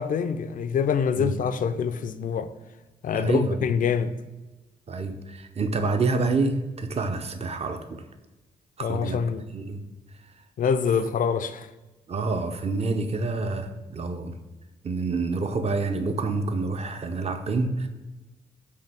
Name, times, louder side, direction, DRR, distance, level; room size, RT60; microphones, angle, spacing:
voice 1, 0.0-2.5 3.0-4.1 8.8-9.4 10.6-11.7, left 7 dB, 50° left, 0.4 m, -25 dB
voice 2, 3.1-3.7 4.9-8.0 8.8-9.2 9.5-9.8 12.1-14.4 14.8-17.9, right 3 dB, 35° right, 0.6 m, -27 dB
4.7 x 2.8 x 3.4 m
hypercardioid pair, 45°, 18 cm